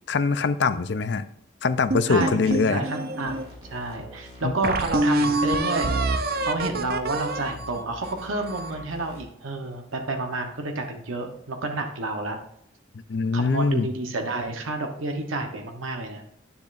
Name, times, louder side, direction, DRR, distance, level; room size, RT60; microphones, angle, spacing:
voice 1, 0.1-1.3 1.6-2.8 4.4-4.5 13.1-13.9, left 4 dB, 55° left, 13 dB, 0.5 m, -23 dB
sound 1, 1.9-3.5 4.0-4.1 4.6-8.8, right 2 dB, 50° right, 0.6 m, -26 dB
voice 2, 2.1-3.4 3.7-6.2 6.4-12.4 13.3-16.2, right 2 dB, 85° right, 4 dB, 1.0 m, -30 dB
sound 2, 3.3-9.2, left 1 dB, 20° right, 2.8 m, -45 dB
9.9 x 7.0 x 2.6 m, 0.74 s
head